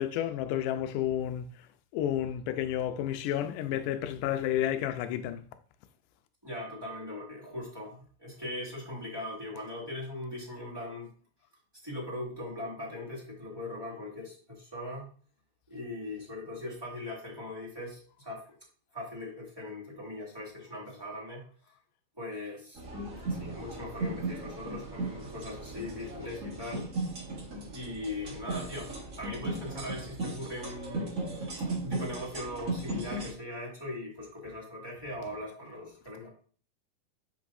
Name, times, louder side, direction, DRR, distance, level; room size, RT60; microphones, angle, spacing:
voice 1, 0.0-1.7 1.9-5.5, left 11 dB, 80° left, 2.0 m, -31 dB
voice 2, 6.4-11.1 11.8-15.1 15.7-18.4 18.9-21.5 22.2-22.8 23.3-26.9 27.7-31.2 31.8-36.3, left 1 dB, 10° right, 1.5 m, -40 dB
sound 1, 22.7-33.3, right 2 dB, 40° right, 1.1 m, -37 dB
8.1 x 5.2 x 2.6 m
omnidirectional pair, 4.1 m